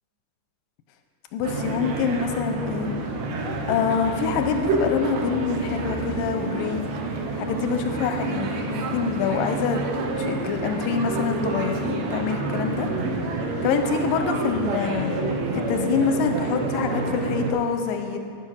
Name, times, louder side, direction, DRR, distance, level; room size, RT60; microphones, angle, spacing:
voice 1, 1.3-3.0 3.7-6.9 7.4-9.9 10.2-12.9 13.6-15.1 15.5-18.2, left 6 dB, 80° left, 6 dB, 2.2 m, -26 dB
sound 1, 1.4-17.5, right 2 dB, 70° right, 1.6 m, -28 dB
10.5 x 9.2 x 6.2 m, 2.4 s
omnidirectional pair, 4.4 m